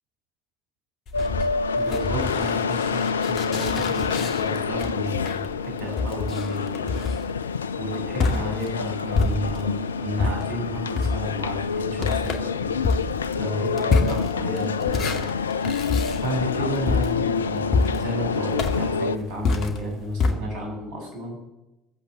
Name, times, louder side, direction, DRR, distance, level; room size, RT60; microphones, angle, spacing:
sound 1, 1.1-19.2, left 5 dB, 85° left, 0.4 m, -27 dB
sound 2, 1.1-9.8 10.2-20.3, left 4 dB, 50° left, 2.1 m, -28 dB
voice 1, 1.8-7.0 7.8-12.8 13.4-15.3 16.2-21.4, equal, 60° right, 1 dB, 7.0 m, -32 dB
22.5 x 8.0 x 7.6 m, 1.0 s
figure-of-eight pair, 65°, 0 cm